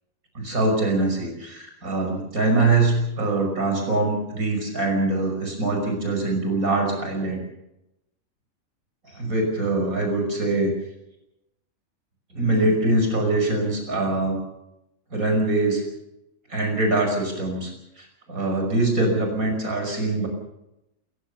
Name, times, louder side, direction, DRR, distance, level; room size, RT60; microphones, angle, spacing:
voice 1, 0.3-7.5 9.1-10.7 12.3-14.4 15.1-15.8 16.5-20.3, right 2 dB, 85° right, 3 dB, 6.3 m, -23 dB
28.0 x 15.5 x 6.9 m, 0.87 s
omnidirectional pair, 1.5 m